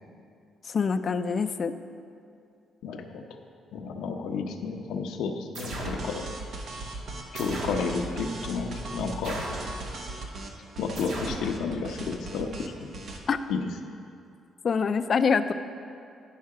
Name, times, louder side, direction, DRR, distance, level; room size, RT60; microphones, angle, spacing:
voice 1, 0.6-1.7 13.3-13.4 14.6-15.5, left 5 dB, 45° left, 10 dB, 0.4 m, -25 dB
voice 2, 2.8-3.4 3.7-6.3 7.3-9.4 10.8-12.9 13.5-13.7, left 5 dB, 85° left, 5 dB, 0.7 m, -32 dB
sound 1, 5.5-6.1 7.4-7.9 9.2-9.7 11.0-11.5, right 1 dB, 80° right, 1.3 m, -36 dB
sound 2, 5.7-13.2, right 2 dB, 60° right, 0.9 m, -38 dB
10.5 x 5.6 x 4.8 m, 2.4 s
cardioid pair, 90°, 0 cm